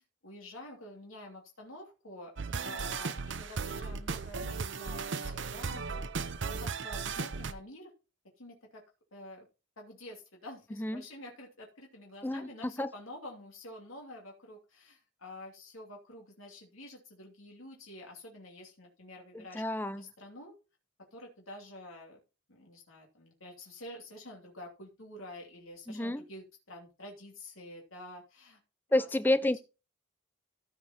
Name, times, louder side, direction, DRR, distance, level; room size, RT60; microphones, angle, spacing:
voice 1, 0.2-2.3 2.6-5.9 6.4-7.9 8.4-8.8 9.1-9.5 9.8-20.5 21.1-22.2 22.5-28.6 28.9-29.1, left 1 dB, 90° left, 2.8 m, -48 dB
sound 1, 2.4-7.5, right 4 dB, 60° right, 0.7 m, -36 dB
voice 2, 12.2-12.9 19.3-20.0 25.9-26.2 28.9-29.6, left 1 dB, 10° left, 0.5 m, -30 dB
15.0 x 5.2 x 4.3 m
head